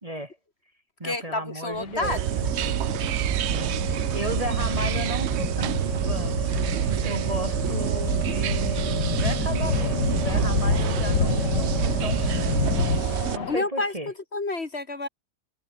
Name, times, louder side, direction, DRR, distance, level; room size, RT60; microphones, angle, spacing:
voice 1, 0.0-0.4 1.0-2.5 3.5-12.5 13.3-14.1, right 1 dB, 20° right, 2.0 m, -35 dB
voice 2, 1.0-2.2 13.5-15.1, left 2 dB, 40° left, 2.0 m, -29 dB
sound 1, 1.7-13.6, left 8 dB, 80° left, 2.1 m, -39 dB
sound 2, 2.0-13.4, right 12 dB, 90° right, 0.5 m, -27 dB
sound 3, 2.4-13.0, left 5 dB, 65° left, 2.8 m, -29 dB
omnidirectional pair, 1.8 m